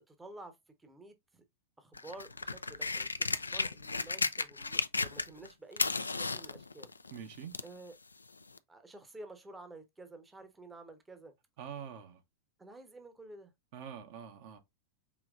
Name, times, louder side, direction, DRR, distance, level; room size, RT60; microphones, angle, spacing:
voice 1, 0.1-1.4 1.8-6.9 7.6-8.0 8.7-11.3 12.6-13.5, right 2 dB, 10° right, 0.8 m, -51 dB
sound 1, 1.9-5.5 5.7-7.8 8.6-8.7, left 3 dB, 80° left, 0.3 m, -34 dB
voice 2, 7.1-7.5 11.6-12.2 13.7-14.6, right 8 dB, 50° right, 0.9 m, -45 dB
5.1 x 3.0 x 2.4 m
figure-of-eight pair, 90°, 0 cm